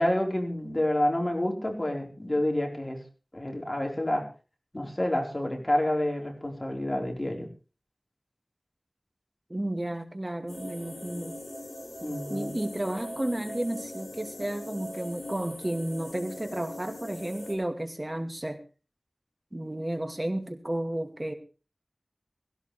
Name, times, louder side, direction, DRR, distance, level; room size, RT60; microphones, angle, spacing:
voice 1, 0.0-3.0 3.3-4.2 4.7-7.5 12.0-12.5, left 1 dB, 35° left, 2 dB, 4.4 m, -28 dB
voice 2, 9.5-11.4 12.3-18.6 19.5-21.3, right 1 dB, 30° right, 6 dB, 2.3 m, -32 dB
sound 1, 10.5-17.5, left 1 dB, 90° left, 5.9 m, -41 dB
17.0 x 16.5 x 3.4 m, 0.34 s
wide cardioid pair, 55°, 0 cm